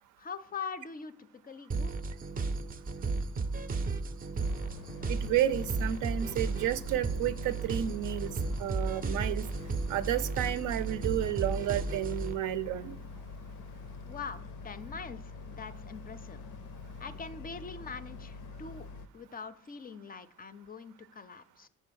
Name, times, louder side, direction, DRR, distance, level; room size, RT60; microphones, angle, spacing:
voice 1, 0.2-1.1 1.4-1.9 14.0-15.2 15.5-16.4 17.0-18.9 19.1-21.7, left 5 dB, 30° left, 13 dB, 0.4 m, -43 dB
sound 1, 1.7-12.4, right 3 dB, 30° right, 0.5 m, -34 dB
Boat Water vehicle, 4.4-19.1, left 4 dB, 80° left, 0.5 m, -45 dB
voice 2, 5.1-8.3 8.6-9.5 9.9-13.0, right 12 dB, 80° right, 13 dB, 0.5 m, -31 dB
5.4 x 4.9 x 6.2 m, 0.75 s
cardioid pair, 90°, 30 cm